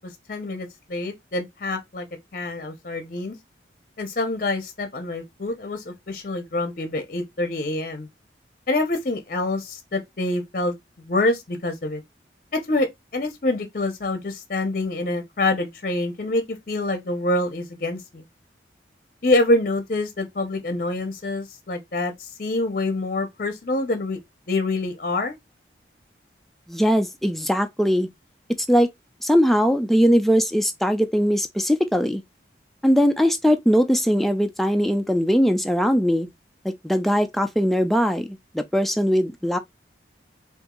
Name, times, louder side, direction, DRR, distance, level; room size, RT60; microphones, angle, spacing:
voice 1, 0.3-2.1 2.3-3.4 4.0-8.1 8.7-10.7 11.1-12.0 12.5-12.9 13.1-18.2 19.2-24.2 24.5-25.4, left 2 dB, 50° left, 0.7 m, -26 dB
voice 2, 26.7-28.1 28.7-28.9 29.2-32.2 32.8-36.3 36.6-39.6, equal, ahead, 0.4 m, -20 dB
3.9 x 2.6 x 3.6 m
head